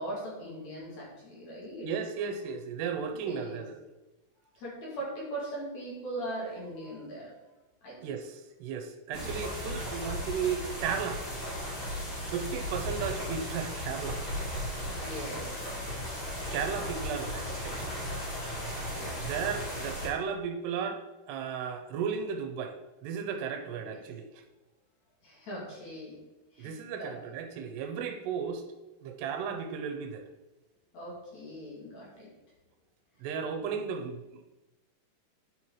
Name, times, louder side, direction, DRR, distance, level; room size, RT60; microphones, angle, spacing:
voice 1, 0.0-1.9 3.2-3.6 4.6-7.3 7.8-8.0 9.1-9.4 14.9-15.5 15.7-16.1 18.8-19.2 23.8-23.9 25.2-26.2 26.5-27.1 30.9-32.3, right 1 dB, 45° left, -4 dB, 3.4 m, -40 dB
voice 2, 1.8-3.8 8.0-11.2 12.3-14.2 16.5-18.0 19.2-24.4 26.6-28.6 29.0-30.3 33.2-34.4, right 6 dB, 85° right, 7 dB, 2.9 m, -35 dB
sound 1, 9.1-20.1, equal, 30° left, 3.6 m, -36 dB
10.5 x 5.7 x 4.8 m, 1.1 s
omnidirectional pair, 4.7 m